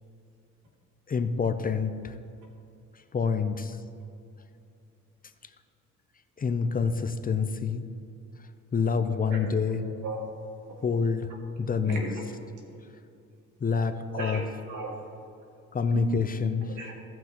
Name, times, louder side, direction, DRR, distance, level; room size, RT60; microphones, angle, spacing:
voice 1, 1.1-2.1 3.1-3.8 6.4-7.9 8.7-9.8 10.8-11.3 11.6-12.0 13.6-14.4 15.7-16.7, left 5 dB, 30° left, 9 dB, 0.5 m, -27 dB
voice 2, 9.8-10.3 11.8-12.3 14.1-15.0 15.9-16.1 16.7-16.9, right 2 dB, 80° right, -1 dB, 2.1 m, -36 dB
16.5 x 6.0 x 3.0 m, 2.6 s
cardioid pair, 90°, 30 cm